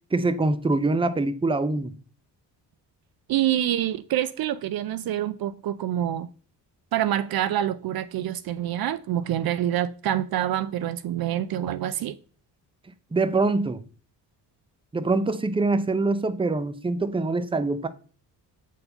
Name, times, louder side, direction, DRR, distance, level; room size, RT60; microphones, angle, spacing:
voice 1, 0.1-1.9 13.1-13.8 14.9-17.9, right 3 dB, 15° right, 0.7 m, -24 dB
voice 2, 3.3-6.3 6.9-12.2, right 11 dB, 60° right, 0.5 m, -26 dB
8.2 x 4.6 x 5.5 m
cardioid pair, 100°, 41 cm